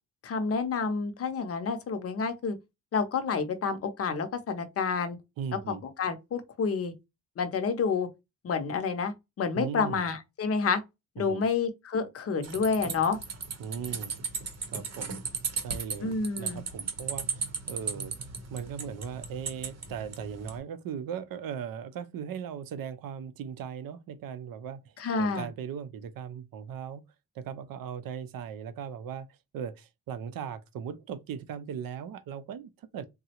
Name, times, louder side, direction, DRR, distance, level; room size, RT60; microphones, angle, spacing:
voice 1, 0.2-2.6 2.9-5.2 5.7-6.9 7.4-8.1 8.4-10.8 11.2-13.2 16.0-16.6 25.0-25.5, left 5 dB, 45° left, 0.5 m, -29 dB
voice 2, 5.4-5.8 9.5-10.0 11.2-11.4 13.6-14.1 14.7-15.2 15.6-27.0 27.3-33.0, right 7 dB, 80° right, 0.5 m, -38 dB
sound 1, 12.4-20.6, right 5 dB, 50° right, 0.7 m, -36 dB
3.6 x 2.0 x 2.8 m
wide cardioid pair, 175°, 34 cm